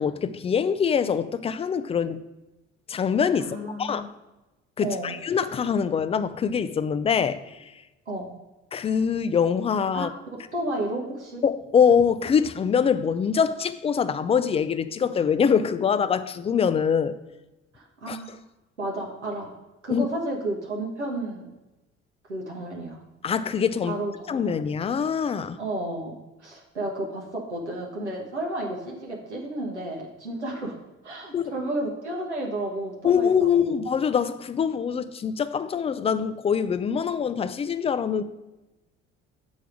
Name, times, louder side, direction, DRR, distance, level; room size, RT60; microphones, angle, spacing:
voice 1, 0.0-2.2 2.9-4.1 4.8-7.7 8.7-10.1 11.4-17.2 18.1-18.4 19.9-20.1 23.2-24.0 24.3-25.6 31.3-31.6 33.0-38.2, left 7 dB, 20° left, 0.3 m, -24 dB
voice 2, 3.4-4.1 4.8-5.2 8.1-8.3 9.9-11.4 17.7-18.4 18.8-19.6 19.8-21.5 22.3-23.0 23.8-24.5 25.6-30.8 31.0-33.8, right 1 dB, 85° right, 0.8 m, -32 dB
7.1 x 3.4 x 6.2 m
figure-of-eight pair, 50°, 34 cm